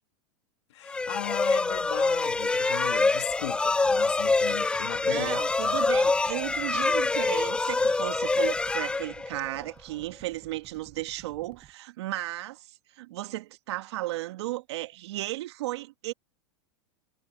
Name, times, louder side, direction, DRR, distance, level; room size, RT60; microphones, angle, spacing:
voice 1, 0.7-5.8 6.8-6.9, left 14 dB, 75° left, 2.0 m, -37 dB
sound 1, 0.9-9.6, left 3 dB, 5° left, 0.3 m, -26 dB
sound 2, 3.8-11.7, right 11 dB, 35° right, 7.3 m, -54 dB
voice 2, 5.0-12.7 13.0-16.1, right 17 dB, 70° right, 1.5 m, -34 dB
hypercardioid pair, 120°, 14 cm